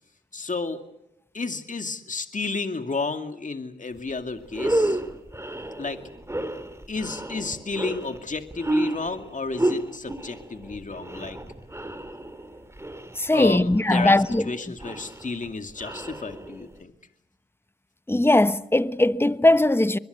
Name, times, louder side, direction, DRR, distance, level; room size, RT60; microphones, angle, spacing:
voice 1, 0.3-0.8 1.3-5.0 5.8-6.0 6.9-11.4 13.3-14.2 14.4-16.9, left 3 dB, 45° left, 2.3 m, -31 dB
sound 1, 4.0-4.1 4.5-16.8, right 1 dB, 15° right, 3.3 m, -31 dB
voice 2, 13.2-14.5 18.1-20.0, left 1 dB, 10° left, 1.1 m, -19 dB
24.0 x 22.0 x 8.2 m
supercardioid pair, 40°, 19 cm